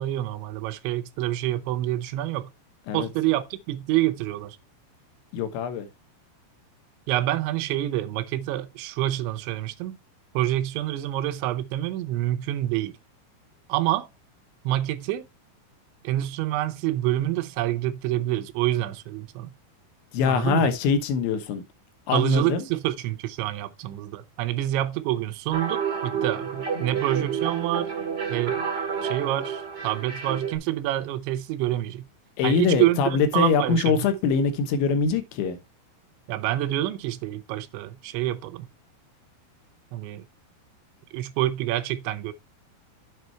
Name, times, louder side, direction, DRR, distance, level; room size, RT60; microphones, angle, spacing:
voice 1, 0.0-2.5 2.9-4.6 7.1-10.0 10.3-12.9 13.7-14.1 14.6-15.2 16.0-19.5 20.3-20.7 22.1-27.9 28.3-28.6 29.0-32.1 32.4-34.1 36.3-38.7 39.9-40.3 41.1-42.3, right 14 dB, 80° right, 3.0 m, -27 dB
voice 2, 5.3-5.9 20.1-21.6 22.1-22.7 32.4-35.6, left 5 dB, 80° left, 3.3 m, -23 dB
sound 1, 25.5-30.6, right 6 dB, 55° right, 1.2 m, -30 dB
8.0 x 5.0 x 4.4 m
omnidirectional pair, 5.3 m